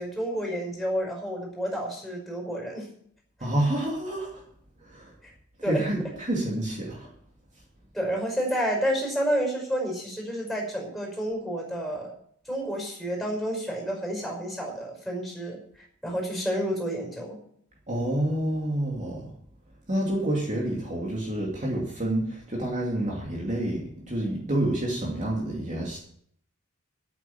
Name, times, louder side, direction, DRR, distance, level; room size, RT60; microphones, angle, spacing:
voice 1, 0.0-2.9 5.2-5.3 5.6-5.9 7.9-12.1 12.5-15.6 16.0-17.4, equal, ahead, -1 dB, 5.3 m, -30 dB
voice 2, 3.4-4.4 4.8-5.1 5.6-7.1 17.9-19.3 19.9-26.0, right 1 dB, 35° right, -3 dB, 2.6 m, -28 dB
9.2 x 9.1 x 9.3 m, 0.65 s
head